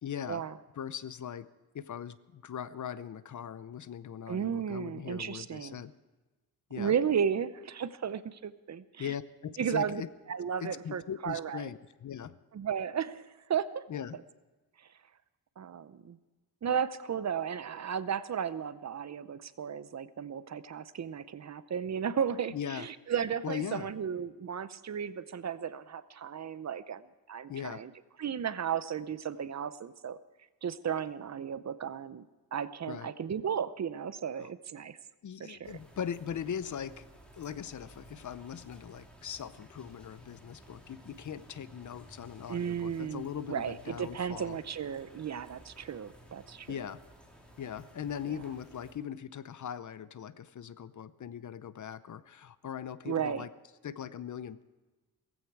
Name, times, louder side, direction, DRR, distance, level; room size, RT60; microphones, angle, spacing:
voice 1, 0.0-0.4 0.8-1.5 1.7-5.9 6.7-6.9 9.0-10.1 10.6-12.4 13.9-14.2 22.5-22.9 23.4-23.9 27.5-27.8 32.9-33.1 34.4-34.5 35.2-37.1 37.3-44.6 46.7-47.0 47.6-53.5 53.8-54.6, left 8 dB, 55° left, 15 dB, 0.7 m, -40 dB
voice 2, 4.3-5.8 6.8-9.1 9.6-10.0 10.3-11.7 12.5-13.8 15.6-16.2 16.6-27.0 27.3-27.9 28.2-30.2 30.6-32.3 32.5-35.0 35.4-35.8 42.5-46.8 53.0-53.4, right 8 dB, 50° right, 15 dB, 0.7 m, -34 dB
sound 1, 35.6-48.9, right 1 dB, 5° left, 3.3 m, -55 dB
17.5 x 15.5 x 4.7 m, 1.2 s
wide cardioid pair, 120°, 36 cm